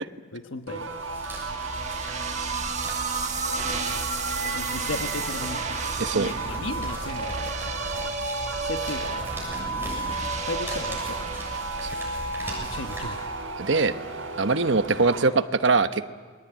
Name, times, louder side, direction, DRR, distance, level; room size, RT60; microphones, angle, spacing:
voice 1, 0.3-1.0 3.6-3.7 4.5-5.7 6.1-7.9 8.6-9.3 9.7-10.0 10.5-11.3 12.6-13.2 13.7-13.9, left 3 dB, 75° left, 6 dB, 1.3 m, -36 dB
sound 1, 0.7-15.3, right 3 dB, 85° right, 3.3 m, -34 dB
sound 2, 0.8-13.7, right 1 dB, 10° right, 7.1 m, -38 dB
sound 3, 1.2-12.5, right 5 dB, 35° right, 1.4 m, -33 dB
voice 2, 6.0-6.3 11.8-11.9 13.6-13.9 14.4-16.0, right 3 dB, 65° right, 10 dB, 1.1 m, -22 dB
29.5 x 22.0 x 9.1 m, 1.5 s
head